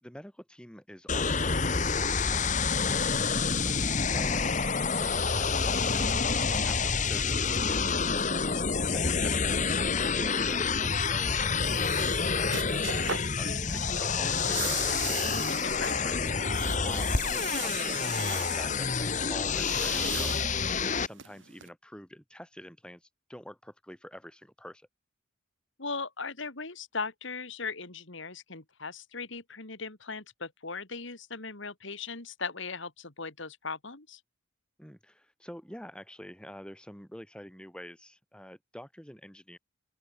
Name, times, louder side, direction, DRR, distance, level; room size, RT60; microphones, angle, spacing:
voice 1, 0.0-3.1 3.4-4.6 4.9-11.6 11.9-13.0 13.3-16.2 16.8-20.4 20.7-24.9 34.8-39.6, equal, 5° left, 4.1 m, -46 dB
sound 1, 1.1-21.1, left 5 dB, 35° left, 1.3 m, -28 dB
sound 2, 10.9-21.7, right 8 dB, 65° right, 2.1 m, -41 dB
voice 2, 15.5-16.1 25.8-34.2, left 4 dB, 65° left, 2.5 m, -38 dB
open air
head